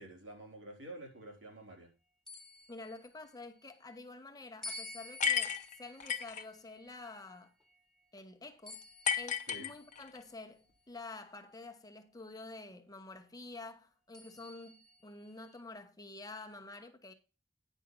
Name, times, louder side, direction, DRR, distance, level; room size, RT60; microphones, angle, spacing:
voice 1, 0.0-1.9 9.5-9.7, right 1 dB, 85° right, 3.7 m, -49 dB
sound 1, 2.3-3.8 4.6-8.1 8.7-10.4 11.1-11.2 14.1-15.6, left 2 dB, 5° left, 1.5 m, -52 dB
voice 2, 2.7-7.5 8.1-8.8 9.2-17.1, left 3 dB, 20° left, 1.1 m, -49 dB
sound 2, 5.2-6.4 9.0-10.2, left 7 dB, 45° left, 0.9 m, -33 dB
10.0 x 5.5 x 5.3 m
head